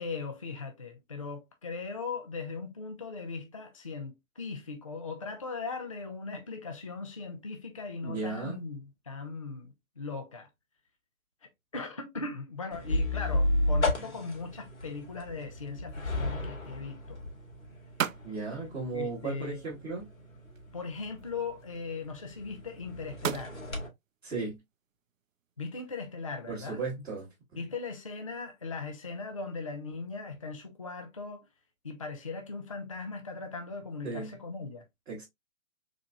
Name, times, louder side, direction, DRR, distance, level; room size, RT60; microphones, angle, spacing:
voice 1, 0.0-10.5 11.4-17.2 18.9-19.6 20.7-23.6 25.6-26.8 27.6-31.4 31.8-34.8, left 4 dB, 25° left, 0.4 m, -39 dB
voice 2, 8.0-8.6 18.2-20.1 24.2-24.6 26.5-27.6 34.0-34.3 35.1-35.2, right 4 dB, 10° right, 1.0 m, -36 dB
sound 1, 12.7-23.9, left 1 dB, 85° left, 1.9 m, -34 dB
sound 2, 14.0-26.8, right 8 dB, 70° right, 0.5 m, -43 dB
3.9 x 3.0 x 2.2 m
figure-of-eight pair, 140°, 41 cm